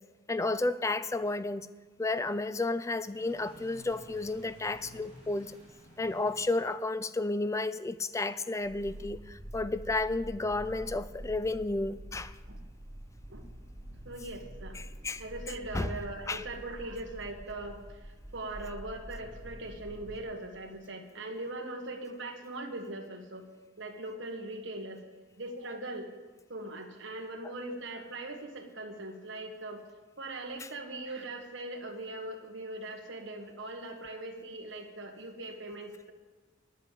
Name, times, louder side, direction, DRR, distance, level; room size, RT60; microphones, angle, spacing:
voice 1, 0.3-1.7 2.0-5.5 6.0-12.3 14.8-15.2 15.7-15.9 16.3-16.4, left 2 dB, 15° left, 13 dB, 0.3 m, -32 dB
sound 1, 3.1-6.6 8.6-20.2, right 1 dB, 5° right, 4.5 m, -47 dB
voice 2, 14.0-14.8 15.2-23.4 23.8-25.0 25.4-26.1 26.5-29.8 30.2-36.1, right 2 dB, 65° right, 3 dB, 1.6 m, -40 dB
10.0 x 8.3 x 7.9 m, 1.3 s
head